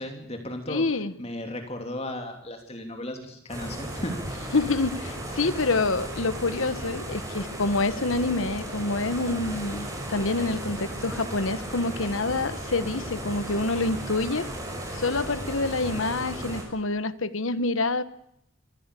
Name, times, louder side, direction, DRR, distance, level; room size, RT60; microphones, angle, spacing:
voice 1, 0.0-0.8 1.2-4.2, left 1 dB, 30° left, 4 dB, 2.9 m, -35 dB
voice 2, 0.7-1.1 4.5-14.5 14.9-18.0, left 3 dB, 80° left, 13 dB, 1.3 m, -27 dB
sound 1, 3.5-16.6, right 1 dB, 15° right, 5.9 m, -35 dB
25.0 x 15.0 x 8.3 m, 0.78 s
head